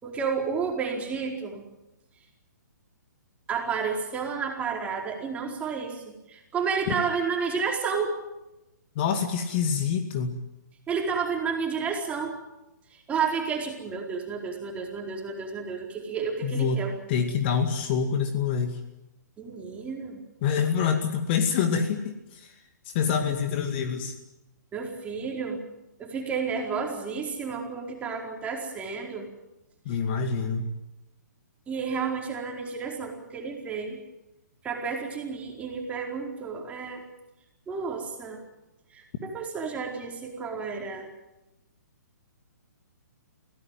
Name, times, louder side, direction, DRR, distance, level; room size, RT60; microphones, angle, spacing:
voice 1, 0.0-1.6 3.5-8.2 10.9-12.4 12.9-16.9 19.4-20.2 24.7-25.6 26.0-29.3 31.7-34.0 34.6-37.0 37.7-38.4 38.9-41.1, right 5 dB, 15° right, 1 dB, 4.5 m, -31 dB
voice 2, 9.0-10.4 16.4-18.8 20.4-22.6 22.9-24.2 29.9-30.7, left 6 dB, 35° left, 6 dB, 2.3 m, -26 dB
25.0 x 17.0 x 9.2 m, 0.97 s
figure-of-eight pair, 125°, 10 cm